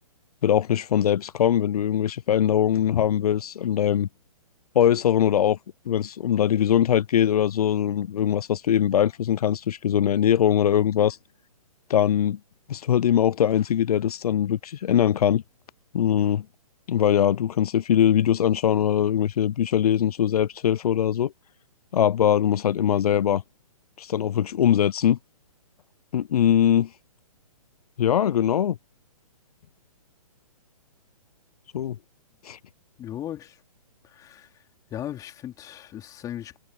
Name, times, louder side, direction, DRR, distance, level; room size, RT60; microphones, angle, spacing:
voice 1, 0.4-4.1 4.8-5.6 5.9-11.2 11.9-12.4 12.7-15.4 15.9-16.5 16.9-21.3 21.9-23.4 24.0-25.2 26.1-26.9 28.0-28.8 31.7-32.0 32.4-32.6, left 10 dB, 80° left, 0.4 m, -21 dB
voice 2, 33.0-33.6 34.0-34.6 34.9-36.6, left 11 dB, 20° left, 3.9 m, -37 dB
hypercardioid pair, 145°, 19 cm